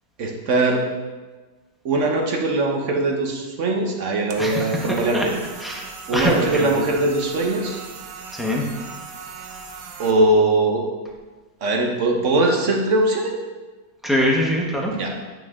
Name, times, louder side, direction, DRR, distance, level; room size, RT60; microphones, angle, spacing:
voice 1, 0.2-0.8 1.8-5.3 6.1-7.8 10.0-10.8 11.6-13.3 14.9-15.1, right 2 dB, 50° right, 1 dB, 1.2 m, -21 dB
sound 1, 4.3-10.1, right 5 dB, 85° right, 1.4 m, -38 dB
voice 2, 4.4-5.2 5.6-6.8 8.3-8.6 14.0-14.9, equal, ahead, -3 dB, 0.7 m, -23 dB
9.2 x 6.2 x 3.7 m, 1.3 s
omnidirectional pair, 1.9 m